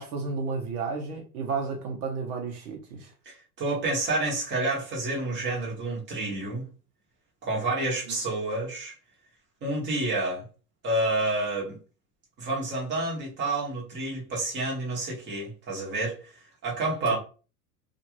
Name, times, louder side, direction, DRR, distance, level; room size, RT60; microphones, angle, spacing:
voice 1, 0.0-3.1 8.1-8.2, right 4 dB, 70° right, 0.9 m, -32 dB
voice 2, 3.2-6.7 7.4-8.9 9.6-10.4 10.8-11.8 12.4-17.2, right 2 dB, 25° right, 1.2 m, -29 dB
2.5 x 2.5 x 3.0 m
supercardioid pair, 130°, 45 cm